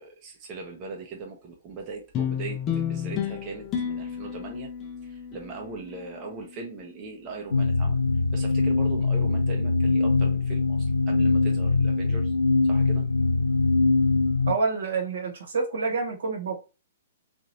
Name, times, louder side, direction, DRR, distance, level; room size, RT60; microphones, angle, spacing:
voice 1, 0.0-4.7 5.0-8.0 8.3-12.3 12.6-13.1, right 4 dB, 30° right, 0.7 m, -40 dB
sound 1, 2.1-6.8, left 8 dB, 30° left, 0.6 m, -32 dB
sound 2, 7.5-14.5, left 3 dB, 85° left, 0.4 m, -22 dB
voice 2, 14.5-16.6, right 4 dB, 70° right, 1.0 m, -27 dB
2.9 x 2.5 x 2.7 m
hypercardioid pair, 120°, 0 cm